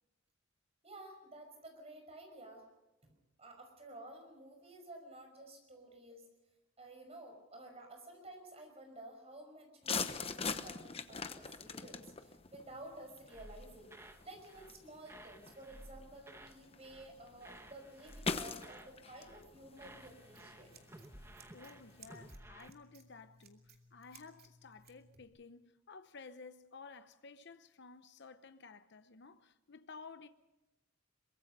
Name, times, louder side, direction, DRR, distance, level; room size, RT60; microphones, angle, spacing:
voice 1, 0.8-2.6 3.0-6.3 6.8-20.7, right 1 dB, 30° right, 5.6 m, -53 dB
sound 1, 9.8-22.3, left 4 dB, 30° left, 1.0 m, -44 dB
sound 2, 13.3-14.2 14.5-14.8 15.0-16.6 16.8-17.1 17.4-18.9 19.2-19.5 19.8-22.7, right 1 dB, 15° right, 1.2 m, -55 dB
Scissors, 19.8-25.2, right 3 dB, 50° right, 2.6 m, -62 dB
voice 2, 21.5-30.3, left 4 dB, 60° left, 0.9 m, -54 dB
23.5 x 22.0 x 5.4 m
head